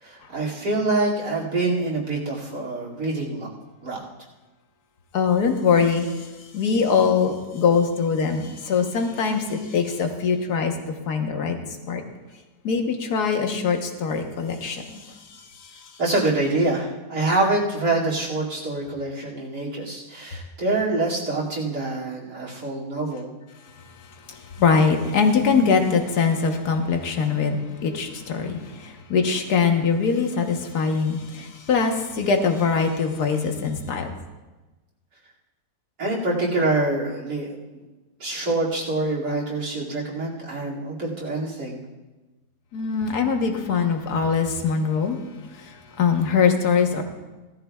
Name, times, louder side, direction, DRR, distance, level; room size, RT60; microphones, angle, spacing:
voice 1, 0.0-3.5 3.8-4.0 16.0-23.3 36.0-37.5 37.7-37.8 38.2-41.8, right 2 dB, 80° right, -3 dB, 3.2 m, -25 dB
voice 2, 5.1-6.3 6.5-10.7 11.1-11.6 11.9-12.0 12.6-14.9 24.3-34.1 42.7-45.2 45.5-47.0, left 5 dB, 75° left, 4 dB, 1.7 m, -22 dB
18.5 x 13.0 x 2.4 m, 1.2 s
omnidirectional pair, 1.7 m